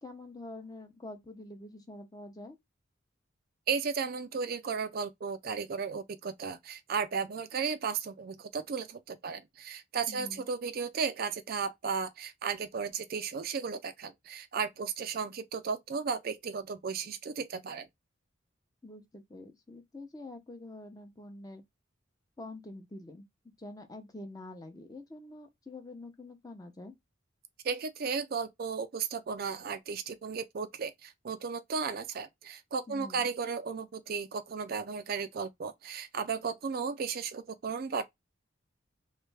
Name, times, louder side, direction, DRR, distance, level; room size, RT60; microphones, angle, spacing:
voice 1, 0.0-2.6 10.1-10.5 18.8-21.6 22.4-23.2 23.6-26.9 32.9-33.3, left 2 dB, 20° left, 0.7 m, -46 dB
voice 2, 3.7-17.9 27.6-38.0, right 5 dB, 50° right, 0.4 m, -35 dB
3.2 x 3.2 x 3.3 m
head